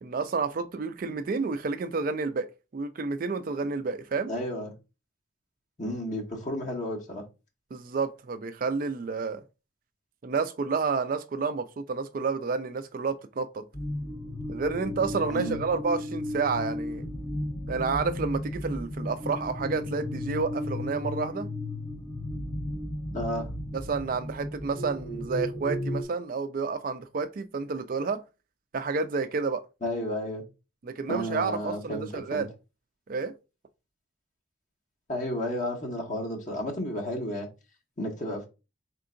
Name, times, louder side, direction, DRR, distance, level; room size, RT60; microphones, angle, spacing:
voice 1, 0.0-2.5 2.7-4.3 7.7-9.4 10.2-13.6 14.5-17.1 17.7-21.5 23.7-28.2 28.7-29.6 30.8-32.5 33.1-33.3, right 4 dB, 45° right, 0.4 m, -30 dB
voice 2, 4.3-4.7 5.8-7.2 15.3-15.6 23.1-23.5 29.8-30.4 31.1-32.5 35.1-37.5 38.0-38.5, left 1 dB, 40° left, 1.3 m, -32 dB
sound 1, 13.7-26.0, left 1 dB, 20° left, 0.6 m, -34 dB
4.5 x 3.7 x 2.6 m
head